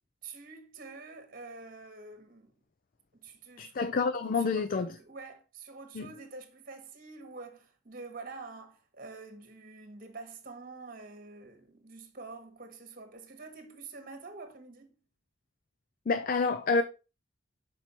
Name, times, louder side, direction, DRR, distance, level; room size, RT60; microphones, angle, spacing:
voice 1, 0.2-2.5 3.1-14.9, right 3 dB, 45° right, 1.3 m, -47 dB
voice 2, 3.6-5.0 5.9-6.1 16.1-16.8, left 4 dB, 45° left, 0.4 m, -28 dB
6.0 x 4.5 x 4.3 m
head